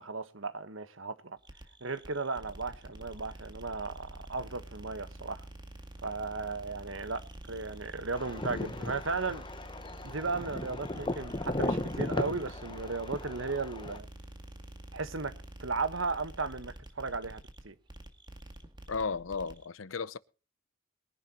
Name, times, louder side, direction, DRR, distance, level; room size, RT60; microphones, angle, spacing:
voice 1, 0.0-1.4 1.8-5.4 6.0-7.2 7.5-9.4 10.0-14.1 14.9-15.3 15.6-17.7, right 4 dB, 80° right, 1.3 m, -35 dB
sound 1, 1.4-19.6, right 1 dB, 25° right, 2.1 m, -48 dB
sound 2, 8.1-14.0, left 2 dB, 25° left, 1.1 m, -36 dB
voice 2, 18.9-20.2, left 4 dB, 85° left, 0.7 m, -34 dB
22.5 x 11.0 x 3.0 m
head